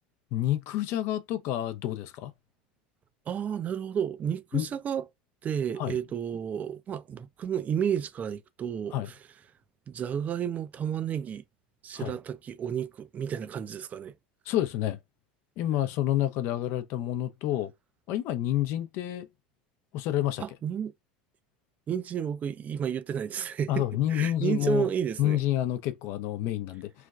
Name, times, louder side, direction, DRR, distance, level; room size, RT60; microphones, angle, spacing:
voice 1, 0.3-2.3 4.5-4.7 5.8-6.0 8.9-9.1 12.0-12.1 14.5-15.0 15.6-17.7 18.1-19.3 19.9-20.4 23.7-24.9 25.2-26.9, left 13 dB, 60° left, 0.6 m, -28 dB
voice 2, 3.3-5.1 5.4-9.2 9.9-11.4 11.8-14.1 20.4-20.9 21.9-25.4, right 8 dB, 35° right, 0.4 m, -32 dB
3.2 x 2.3 x 2.3 m
hypercardioid pair, 85°, 5 cm